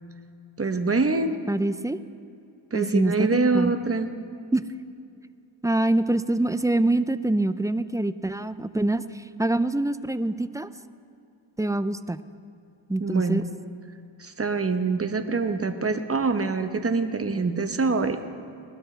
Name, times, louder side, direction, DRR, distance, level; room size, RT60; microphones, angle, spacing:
voice 1, 0.6-1.4 2.7-4.1 13.0-13.4 14.2-18.2, right 4 dB, 30° right, 8 dB, 0.9 m, -25 dB
voice 2, 1.5-2.0 2.7-3.7 4.5-4.6 5.6-10.7 11.6-12.2 12.9-13.4, right 2 dB, 10° right, 13 dB, 0.3 m, -25 dB
20.5 x 12.5 x 3.3 m, 2.5 s
cardioid pair, 55°, 48 cm